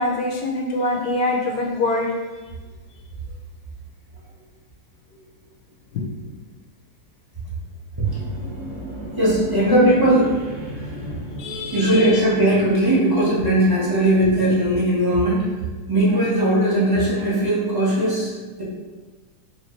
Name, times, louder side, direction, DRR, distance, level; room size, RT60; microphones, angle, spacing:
voice 1, 0.0-2.1 5.9-6.0 11.4-12.2, left 2 dB, 65° left, 0 dB, 0.9 m, -24 dB
sound 1, 8.0-14.7, right 1 dB, 60° right, 2.0 m, -36 dB
voice 2, 9.1-10.3 11.7-15.5 15.9-18.6, right 1 dB, 15° right, -9 dB, 0.8 m, -19 dB
4.4 x 2.9 x 3.1 m, 1.3 s
omnidirectional pair, 2.0 m